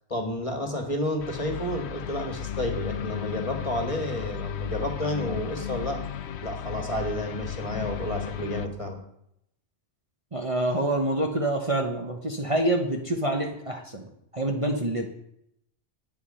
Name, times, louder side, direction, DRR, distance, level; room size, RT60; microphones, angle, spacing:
voice 1, 0.1-6.0 6.4-9.0, left 1 dB, 30° left, 3 dB, 1.9 m, -31 dB
sound 1, 1.2-8.7, left 9 dB, 70° left, 0.9 m, -34 dB
voice 2, 10.3-15.1, right 1 dB, 30° right, 1 dB, 1.1 m, -27 dB
11.0 x 8.8 x 5.6 m, 0.75 s
omnidirectional pair, 1.2 m